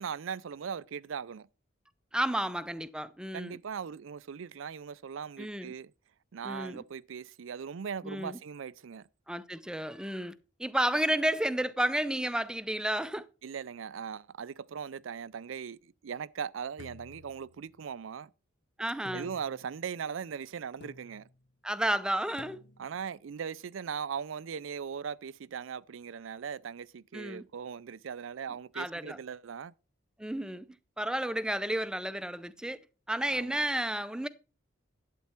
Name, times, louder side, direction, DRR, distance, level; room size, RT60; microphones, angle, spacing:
voice 1, 0.0-1.5 3.3-5.9 6.3-9.1 13.4-18.3 19.1-21.3 22.8-29.7 33.3-33.6, right 7 dB, 85° right, 0.4 m, -39 dB
voice 2, 2.1-3.6 5.4-5.7 6.4-6.8 8.0-8.4 9.3-13.3 18.8-19.3 21.6-22.6 27.1-27.4 28.7-29.2 30.2-30.7 31.0-32.8 33.1-34.3, right 1 dB, 5° right, 0.5 m, -32 dB
sound 1, 16.8-18.0 19.0-19.8 20.8-21.4 22.4-23.0, left 2 dB, 55° left, 0.6 m, -52 dB
11.5 x 8.4 x 4.4 m
head